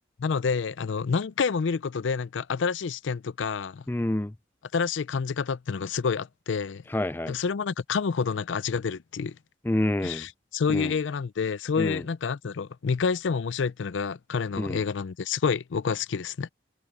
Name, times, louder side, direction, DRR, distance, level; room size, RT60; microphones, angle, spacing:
voice 1, 0.2-3.8 4.7-6.8 7.3-9.4 10.0-16.5, left 5 dB, 85° left, 0.5 m, -28 dB
voice 2, 3.9-4.3 6.9-7.4 9.6-10.3 10.7-10.9 11.8-12.0 14.6-14.8, left 1 dB, 10° left, 0.4 m, -28 dB
head